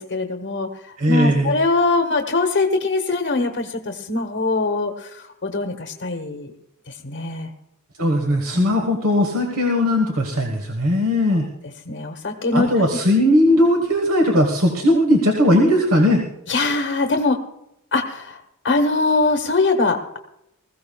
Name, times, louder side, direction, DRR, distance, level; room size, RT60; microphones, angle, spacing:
voice 1, 0.0-6.5 7.0-7.5 8.5-8.7 11.3-11.4 11.9-12.9 16.5-17.4 17.9-18.4 18.6-20.2, left 3 dB, 60° left, 3 dB, 1.1 m, -22 dB
voice 2, 1.0-1.5 8.0-11.5 12.5-16.2, left 1 dB, 65° right, 3 dB, 1.4 m, -18 dB
21.0 x 15.0 x 2.3 m, 0.82 s
head